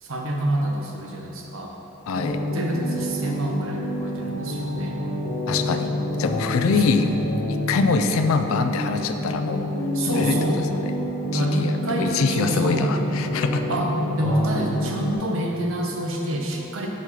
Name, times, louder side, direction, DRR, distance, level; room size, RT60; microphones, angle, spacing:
voice 1, 0.0-1.7 2.5-5.0 6.7-6.8 9.9-10.6 11.3-12.9 13.7-16.9, right 1 dB, 80° right, 0 dB, 0.9 m, -27 dB
voice 2, 2.1-2.4 5.5-5.9 6.2-7.1 7.5-9.7 10.1-10.6 11.3-13.6, left 4 dB, 85° left, 7 dB, 0.4 m, -24 dB
sound 1, 2.1-15.1, left 1 dB, 30° left, 0.6 m, -28 dB
5.7 x 5.2 x 4.8 m, 3.0 s
head